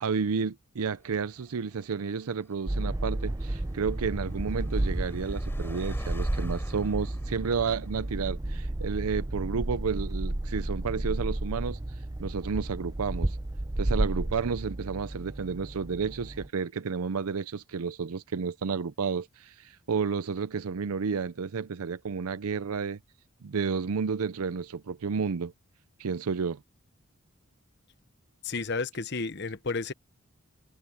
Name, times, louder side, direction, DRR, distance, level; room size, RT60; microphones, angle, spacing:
voice 1, 0.0-11.8 12.2-13.4 13.8-23.0 23.4-25.5 26.0-26.6, right 5 dB, 85° right, 0.5 m, -31 dB
Car, 1.0-8.8, equal, 10° left, 6.4 m, -48 dB
sound 1, 2.7-16.5, right 1 dB, 15° right, 0.5 m, -32 dB
voice 2, 28.4-29.9, left 4 dB, 50° left, 1.0 m, -32 dB
head